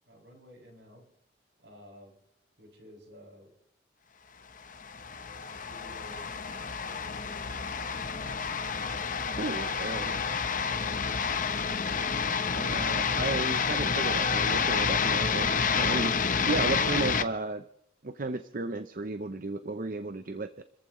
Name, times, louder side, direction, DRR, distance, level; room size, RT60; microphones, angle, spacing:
voice 1, 0.1-1.0 1.6-2.2 2.6-3.5 5.0-6.3 6.7-7.4 7.7-8.3 9.1-11.3, equal, 70° right, 0 dB, 7.3 m, -53 dB
sound 1, 4.7-17.2, left 6 dB, 45° left, 1.0 m, -29 dB
voice 2, 9.4-10.1 12.4-16.2 16.4-17.6 18.0-20.6, right 3 dB, 45° right, 9 dB, 0.7 m, -34 dB
29.5 x 15.0 x 3.2 m, 0.71 s
head